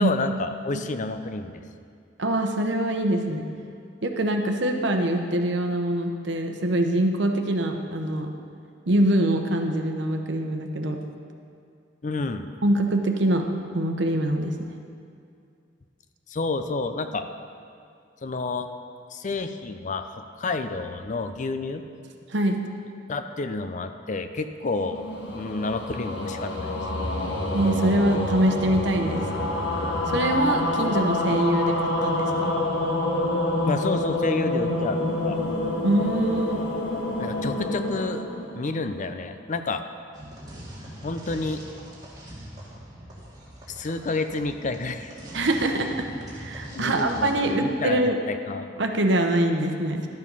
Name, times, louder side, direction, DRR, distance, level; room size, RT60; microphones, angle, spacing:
voice 1, 0.0-1.6 12.0-12.5 16.3-17.3 18.2-18.7 19.1-21.8 23.1-25.0 25.3-26.8 33.6-35.0 35.2-35.4 37.2-38.2 38.5-39.8 41.0-41.6 43.7-45.2 46.7-48.8, left 3 dB, 40° left, 8 dB, 0.5 m, -29 dB
voice 2, 2.2-3.4 4.0-8.3 8.9-11.0 12.6-13.5 13.7-14.5 22.3-22.6 27.5-29.2 30.1-32.5 35.8-36.6 45.3-46.1 46.3-48.2 48.8-50.1, right 1 dB, 65° right, 4 dB, 0.9 m, -24 dB
sound 1, 24.7-39.2, left 2 dB, 65° left, 1.5 m, -27 dB
sound 2, 40.1-47.5, right 1 dB, 20° right, 2.2 m, -42 dB
12.0 x 7.5 x 5.4 m, 2.3 s
head